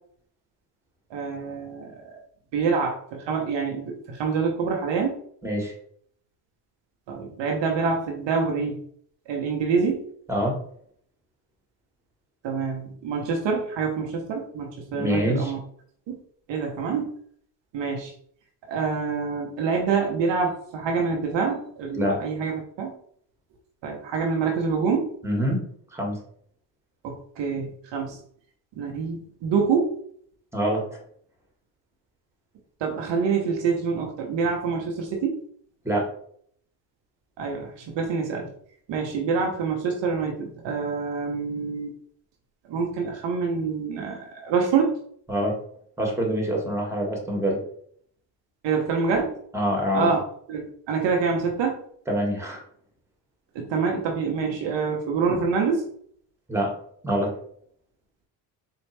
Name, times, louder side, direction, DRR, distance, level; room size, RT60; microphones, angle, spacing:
voice 1, 1.1-2.2 2.5-5.2 7.1-8.8 9.3-10.0 12.4-15.6 16.1-16.2 16.5-17.1 17.7-18.1 18.7-22.9 23.8-25.1 27.0-28.2 28.7-30.0 32.8-35.4 37.4-38.5 38.9-41.9 42.7-45.0 48.6-49.4 49.9-50.2 50.5-51.8 53.5-55.9, right 5 dB, 60° right, 1 dB, 1.0 m, -26 dB
voice 2, 5.4-5.7 10.3-10.6 14.9-15.5 21.9-22.2 25.2-25.6 25.9-26.2 30.5-30.8 35.8-36.1 45.3-45.6 46.0-47.6 49.5-50.1 52.1-52.6 56.5-56.7 57.0-57.4, equal, 5° right, -1 dB, 1.7 m, -25 dB
4.3 x 2.4 x 3.3 m, 0.62 s
supercardioid pair, 60°, 49 cm